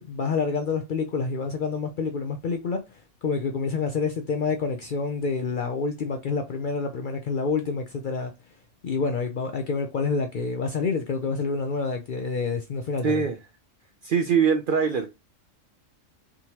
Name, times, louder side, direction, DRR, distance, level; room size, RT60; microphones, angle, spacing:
voice 1, 0.0-8.3 8.8-13.2, left 4 dB, 60° left, 0.5 m, -28 dB
voice 2, 13.0-13.4 14.0-15.1, right 6 dB, 60° right, 0.5 m, -22 dB
3.6 x 2.9 x 2.8 m
omnidirectional pair, 1.3 m